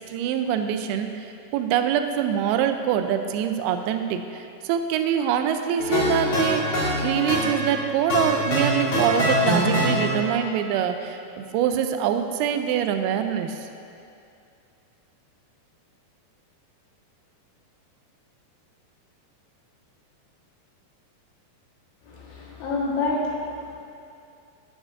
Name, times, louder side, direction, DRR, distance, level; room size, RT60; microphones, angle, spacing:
voice 1, 0.1-13.7, right 9 dB, 80° right, 7 dB, 2.4 m, -25 dB
sound 1, 5.8-10.5, equal, 45° left, 1.7 m, -24 dB
voice 2, 22.0-23.7, left 3 dB, 75° left, -5 dB, 3.3 m, -28 dB
12.5 x 9.1 x 2.5 m, 2.5 s
omnidirectional pair, 4.7 m